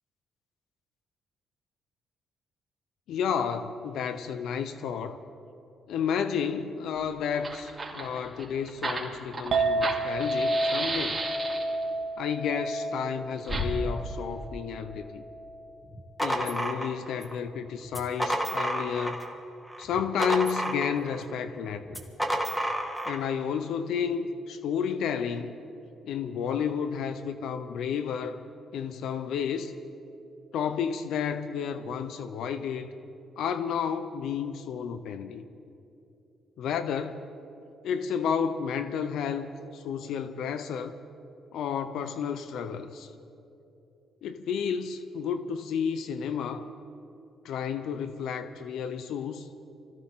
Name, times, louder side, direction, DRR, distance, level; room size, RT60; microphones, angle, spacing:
voice 1, 3.1-5.2 5.9-11.2 12.2-15.2 16.2-19.2 19.8-22.0 23.1-25.6 26.0-28.4 28.7-29.7 30.5-32.9 33.4-35.4 36.6-37.2 37.8-40.9 41.5-43.1 44.2-46.7 47.4-49.5, left 7 dB, 80° left, 10 dB, 0.7 m, -31 dB
Fire, 7.0-7.1 7.3-11.8 13.4-13.7, right 2 dB, 25° right, 3.0 m, -33 dB
Chink clink, 9.5-15.8, right 2 dB, 50° right, 1.7 m, -31 dB
sound 1, 15.9-17.4 17.9-19.3 19.7-21.2 21.9-23.2, equal, ahead, 2.0 m, -30 dB
24.5 x 16.0 x 3.7 m, 2.8 s
cardioid pair, 90°, 0 cm